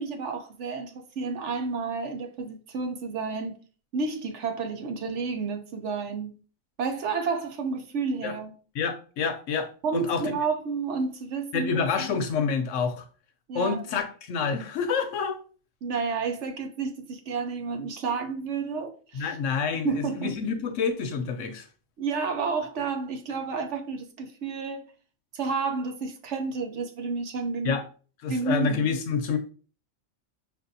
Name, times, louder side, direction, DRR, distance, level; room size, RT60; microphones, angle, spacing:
voice 1, 0.0-3.6 3.9-6.3 6.8-8.5 9.8-11.8 13.5-13.8 15.8-19.4 19.8-20.4 22.0-24.9 25.3-27.8 28.3-28.9, right 4 dB, 65° right, 0.9 m, -30 dB
voice 2, 8.8-10.4 11.5-13.0 13.5-15.4 19.1-21.6 27.6-27.8 28.2-29.4, left 5 dB, 70° left, 0.9 m, -28 dB
5.2 x 2.6 x 2.6 m
omnidirectional pair, 1.4 m